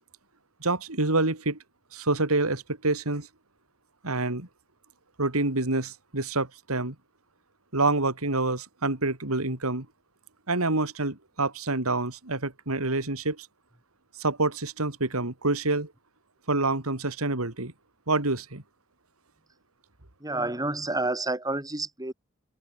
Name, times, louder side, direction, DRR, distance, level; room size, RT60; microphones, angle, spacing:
voice 1, 0.6-1.6 1.9-3.3 4.0-4.5 5.2-6.9 7.7-9.9 10.5-13.5 14.2-15.9 16.5-17.7 18.1-18.6, right 2 dB, 85° right, 3.2 m, -27 dB
voice 2, 20.2-22.1, right 2 dB, 15° right, 4.3 m, -29 dB
open air
head